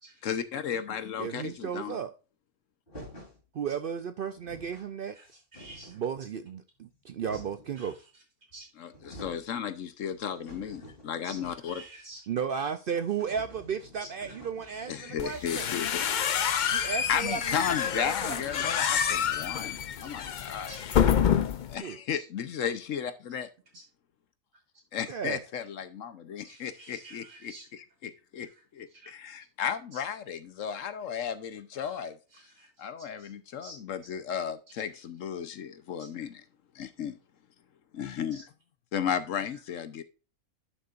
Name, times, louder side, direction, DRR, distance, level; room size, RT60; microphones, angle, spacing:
voice 1, 0.2-2.0 8.8-11.9 14.9-16.0 17.1-20.8 21.7-23.5 24.9-28.5 28.7-32.2 32.8-36.4 36.7-37.2 37.9-38.5 38.9-40.0, left 8 dB, 65° left, 1.1 m, -34 dB
voice 2, 1.2-2.1 3.5-5.2 5.9-8.0 12.3-15.7 16.7-18.7 21.8-22.0 25.1-25.5, right 7 dB, 75° right, 0.5 m, -34 dB
sound 1, 2.9-3.4 4.1-4.2 4.3-4.9 5.2-6.1 6.8-7.7 8.5-8.6 8.9-9.5 9.9-11.8 12.1-12.2 12.5-12.6 13.0-17.5, equal, 35° left, 3.9 m, -50 dB
voice 3, 5.5-6.0 7.8-7.9 8.5-8.7 11.2-11.4 11.7-12.2 14.0-14.1 14.7-14.9 15.3-15.4 16.1-16.8 20.7-20.8 22.1-22.2 26.4-27.7 28.9-29.1 29.9-30.0 31.8-32.0 32.3-32.7 33.2-33.3 33.6-33.8 36.0-36.1, right 2 dB, 55° right, 3.9 m, -49 dB
sound 2, 15.2-21.7, left 8 dB, 85° left, 0.4 m, -28 dB
11.0 x 6.6 x 2.5 m
omnidirectional pair, 1.5 m